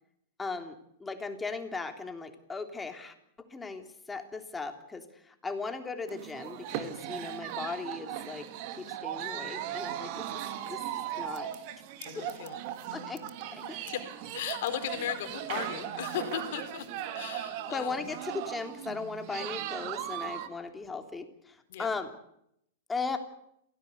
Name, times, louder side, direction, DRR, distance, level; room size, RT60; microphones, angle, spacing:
voice 1, 0.4-0.7 1.0-3.1 3.5-8.5 8.8-10.2 10.6-10.8 11.2-11.5 12.9-13.2 13.5-13.8 17.7-22.1 22.9-23.2, left 4 dB, 10° left, 6 dB, 3.4 m, -37 dB
sound 1, 6.1-20.5, right 11 dB, 45° right, 2.6 m, -38 dB
voice 2, 12.0-13.1 13.6-14.0 14.3-16.9 17.1-18.2 21.7-21.9, left 11 dB, 55° left, 7 dB, 4.0 m, -37 dB
27.5 x 17.5 x 8.2 m, 0.76 s
figure-of-eight pair, 100°, 0 cm